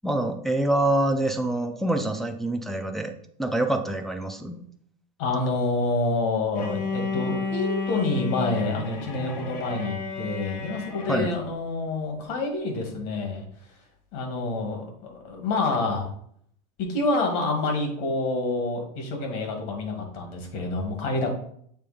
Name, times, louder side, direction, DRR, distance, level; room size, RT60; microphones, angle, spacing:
voice 1, 0.0-3.1 3.4-4.6 11.1-11.4, right 1 dB, ahead, 4 dB, 0.3 m, -25 dB
voice 2, 5.2-13.4 14.1-16.1 16.8-21.3, left 2 dB, 55° left, 2 dB, 2.0 m, -27 dB
Bowed string instrument, 6.6-11.4, left 4 dB, 75° left, 1.5 m, -32 dB
6.9 x 3.4 x 5.0 m, 0.66 s
supercardioid pair, 160°, 21 cm